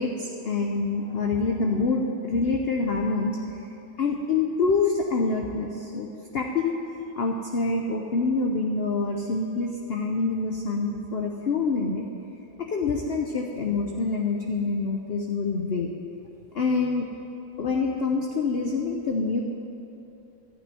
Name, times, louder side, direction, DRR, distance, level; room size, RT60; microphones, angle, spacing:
voice 1, 0.0-3.4 4.0-6.8 7.2-12.1 12.6-15.9 16.5-17.1 17.6-19.4, left 4 dB, 50° left, 2 dB, 0.9 m, -26 dB
12.0 x 6.2 x 9.4 m, 2.9 s
omnidirectional pair, 1.6 m